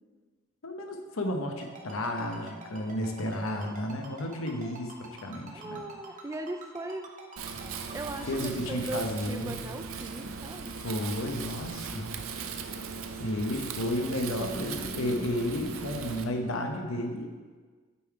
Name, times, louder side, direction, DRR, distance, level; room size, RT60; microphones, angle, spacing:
voice 1, 0.6-5.8 8.3-9.6 10.8-12.1 13.2-17.3, left 1 dB, 90° left, 3 dB, 0.9 m, -32 dB
Ringtone, 1.6-8.4, right 4 dB, 40° right, 1.1 m, -46 dB
voice 2, 5.5-7.1 7.6-10.7 14.3-15.3, right 2 dB, 15° right, 7 dB, 0.3 m, -39 dB
Wind, 7.4-16.2, right 5 dB, 80° right, 0.5 m, -39 dB
8.2 x 3.8 x 4.6 m, 1.5 s
head